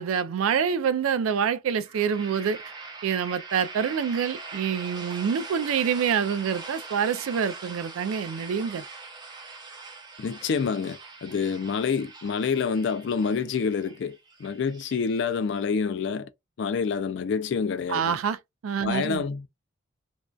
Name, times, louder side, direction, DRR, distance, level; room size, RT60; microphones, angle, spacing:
voice 1, 0.0-2.6 3.0-8.8 17.9-18.4 18.6-19.2, right 7 dB, 80° right, 0.3 m, -26 dB
sound 1, 1.8-15.6, right 4 dB, 20° right, 0.6 m, -42 dB
voice 2, 10.2-16.3 16.6-18.2 18.8-19.5, left 5 dB, 55° left, 0.3 m, -27 dB
2.5 x 2.2 x 2.2 m
head